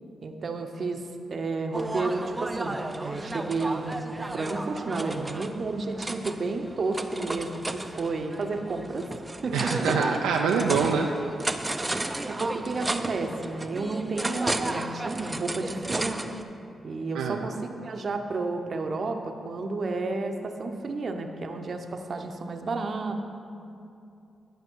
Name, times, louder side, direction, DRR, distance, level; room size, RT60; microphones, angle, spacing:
voice 1, 0.2-9.0 9.4-9.9 12.3-16.2 16.8-23.2, right 3 dB, 55° right, 5 dB, 0.7 m, -31 dB
sound 1, 1.7-16.4, right 2 dB, 20° right, 0.5 m, -33 dB
voice 2, 9.5-11.1 17.1-17.4, right 6 dB, 90° right, 1 dB, 0.4 m, -25 dB
11.5 x 5.2 x 4.6 m, 2.6 s
supercardioid pair, 50°, 0 cm